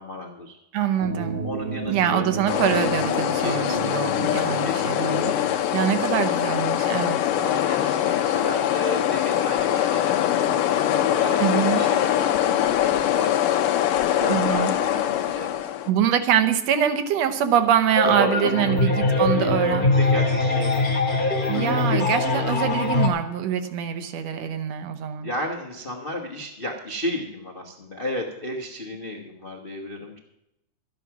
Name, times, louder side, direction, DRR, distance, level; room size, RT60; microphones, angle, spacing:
voice 1, 0.0-0.6 1.4-2.3 3.4-4.2 4.6-5.7 7.4-10.1 10.4-12.2 12.5-13.6 14.2-15.7 18.0-21.2 21.7-22.0 25.2-30.2, left 1 dB, 60° left, 1 dB, 0.5 m, -34 dB
voice 2, 0.7-1.4 1.9-7.2 11.4-11.8 14.3-14.7 15.9-19.9 21.5-25.3, right 9 dB, 65° right, 9 dB, 1.9 m, -24 dB
sound 1, 1.0-7.8, right 4 dB, 50° right, 1.6 m, -35 dB
sound 2, 2.5-15.9, left 11 dB, 90° left, 2.5 m, -23 dB
sound 3, 17.9-23.1, left 2 dB, 30° left, 1.0 m, -22 dB
13.0 x 10.5 x 6.0 m, 0.84 s
omnidirectional pair, 3.7 m